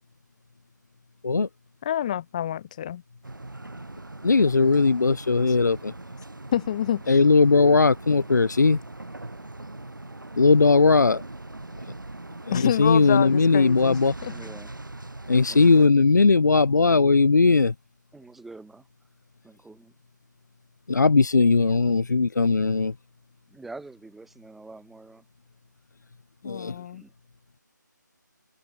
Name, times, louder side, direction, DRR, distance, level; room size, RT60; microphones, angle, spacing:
voice 1, 1.8-3.0 5.5-5.6 6.5-7.2 12.5-14.3 26.4-27.0, left 10 dB, 20° left, 3.4 m, -27 dB
sound 1, 3.2-15.9, right 2 dB, 85° right, 7.9 m, -41 dB
voice 2, 4.2-5.8 7.1-8.8 10.4-11.2 12.8-14.1 15.3-17.7 20.9-22.9 26.5-26.7, left 4 dB, 65° left, 0.7 m, -18 dB
voice 3, 14.2-14.7 15.2-15.9 18.1-18.9 19.4-19.9 23.5-25.2 26.7-27.1, right 3 dB, ahead, 4.6 m, -46 dB
figure-of-eight pair, 165°, 10 cm